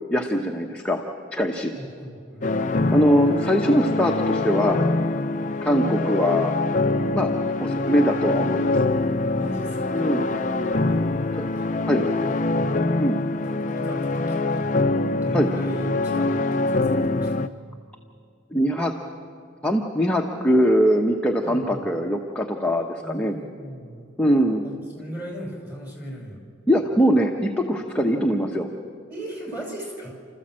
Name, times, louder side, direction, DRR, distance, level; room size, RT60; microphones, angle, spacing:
voice 1, 0.1-1.0 1.3-1.7 2.9-4.8 5.6-6.6 7.1-7.3 7.6-8.8 9.9-10.2 11.4-11.5 11.9-12.1 13.0-13.2 15.3-15.5 18.5-18.9 19.6-23.3 24.2-24.6 26.7-28.7, equal, 5° left, 0 dB, 1.0 m, -22 dB
voice 2, 1.7-2.9 7.8-7.9 9.2-10.4 10.9-11.0 11.6-12.7 13.4-14.8 15.2-17.5 21.4-21.8 23.0-24.1 24.6-26.4 29.1-30.1, right 1 dB, 10° right, -2 dB, 5.2 m, -37 dB
sound 1, 2.4-17.5, left 2 dB, 40° left, 0.6 m, -24 dB
30.0 x 14.0 x 7.6 m, 2.2 s
head